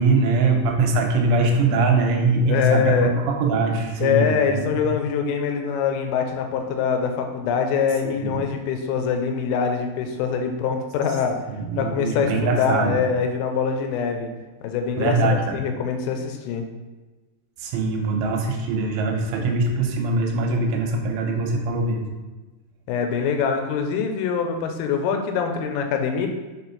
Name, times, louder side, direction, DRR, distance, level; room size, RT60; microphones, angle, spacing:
voice 1, 0.0-4.9 8.2-8.4 11.5-13.0 15.0-15.6 17.6-22.1, right 3 dB, 90° right, 1 dB, 3.3 m, -22 dB
voice 2, 2.4-3.1 4.0-11.4 11.8-14.3 14.6-15.2 15.5-16.7 22.9-26.3, left 6 dB, 90° left, 4 dB, 3.3 m, -24 dB
7.1 x 4.4 x 4.1 m, 1.2 s
omnidirectional pair, 5.6 m